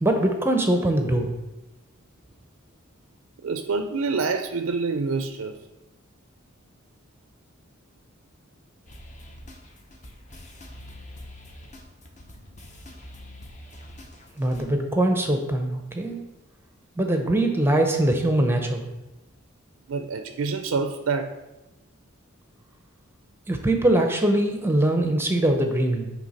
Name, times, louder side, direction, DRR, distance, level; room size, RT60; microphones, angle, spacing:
voice 1, 0.0-1.3 14.4-16.2 17.0-18.9 23.5-26.1, right 1 dB, 10° right, 4 dB, 0.6 m, -22 dB
voice 2, 3.4-5.6 19.9-21.3, right 4 dB, 75° right, 7 dB, 0.4 m, -27 dB
sound 1, 8.9-14.7, left 1 dB, 35° left, 0.8 m, -45 dB
9.8 x 3.4 x 4.1 m, 1.0 s
head